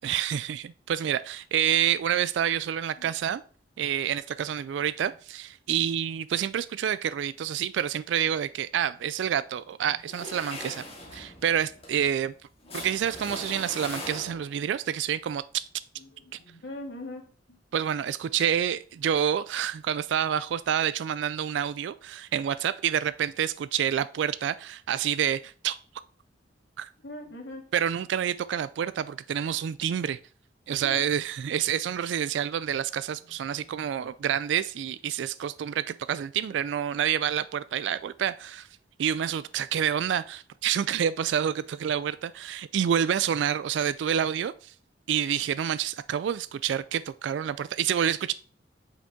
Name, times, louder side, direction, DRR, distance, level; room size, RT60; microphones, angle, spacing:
voice 1, 0.0-3.4 3.8-10.8 11.1-12.3 12.7-15.6 16.3-16.4 17.7-25.8 26.8-26.9 27.7-30.2 30.7-38.7 39.0-44.7 45.1-48.3, right 9 dB, 70° right, 0.3 m, -28 dB
sound 1, 10.0-14.7, left 2 dB, 35° left, 2.1 m, -41 dB
voice 2, 16.0-17.6 20.7-20.8 27.0-27.6 30.8-31.2 33.2-33.9, left 1 dB, 70° left, 2.0 m, -44 dB
8.2 x 5.1 x 3.6 m
head